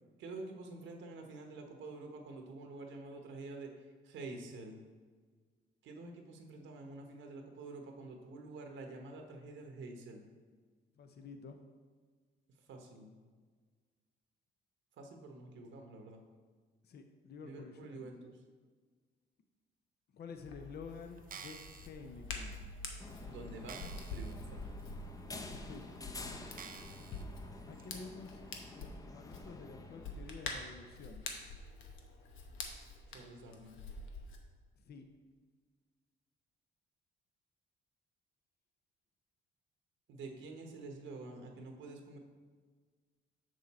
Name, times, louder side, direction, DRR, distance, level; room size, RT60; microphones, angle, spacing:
voice 1, 0.2-3.7 4.0-4.8 5.8-10.2 12.7-13.2 15.0-16.2 17.4-18.4 23.3-24.7 33.1-33.8 40.1-42.2, right 3 dB, 75° right, 3 dB, 1.1 m, -48 dB
voice 2, 11.0-11.6 16.8-18.1 20.1-22.6 25.5-25.9 27.7-28.5 28.7-31.2 34.8-35.1, left 5 dB, 55° left, 6 dB, 0.7 m, -50 dB
Hands, 20.4-34.4, left 3 dB, 85° left, 1.0 m, -47 dB
sound 1, 21.2-21.9 22.6-22.7 23.1-23.2 23.7-24.4 24.8-24.9 25.6-25.7 26.6-27.2 27.8-27.9, right 6 dB, 45° right, 0.6 m, -50 dB
sound 2, 23.0-30.5, left 2 dB, 20° left, 0.6 m, -49 dB
6.4 x 6.4 x 4.2 m, 1.5 s
cardioid pair, 90°, 20 cm